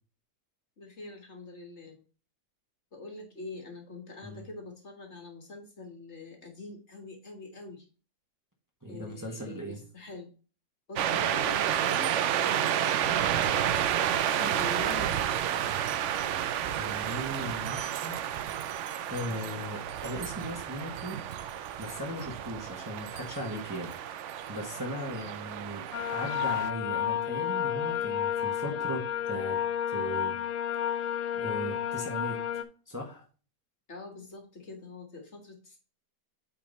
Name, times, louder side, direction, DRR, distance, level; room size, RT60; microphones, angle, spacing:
voice 1, 0.8-2.0 2.9-7.8 8.9-10.3 10.9-13.8 14.2-15.5 19.3-19.7 33.9-35.8, left 3 dB, 45° left, 2 dB, 1.7 m, -44 dB
voice 2, 8.8-9.8 16.7-18.2 19.1-21.2 21.8-29.6 29.9-30.4 30.8-31.1 31.3-33.3, equal, 10° right, 0 dB, 1.2 m, -38 dB
sound 1, 11.0-26.7, right 10 dB, 75° right, 0.6 m, -31 dB
sound 2, 25.9-32.6, left 9 dB, 85° left, 1.2 m, -31 dB
8.6 x 3.9 x 4.0 m, 0.36 s
omnidirectional pair, 1.7 m